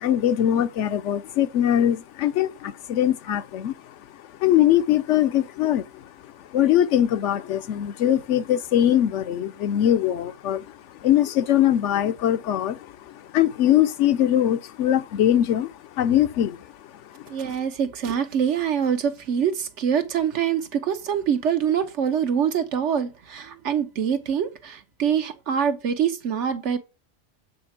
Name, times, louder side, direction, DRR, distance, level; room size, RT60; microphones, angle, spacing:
voice 1, 0.0-3.7 4.4-5.8 6.5-10.6 11.0-12.8 13.3-15.7 16.0-16.6, left 11 dB, 90° left, 1.0 m, -21 dB
voice 2, 17.3-26.8, right 8 dB, 85° right, 1.3 m, -24 dB
8.3 x 4.4 x 6.0 m
omnidirectional pair, 1.2 m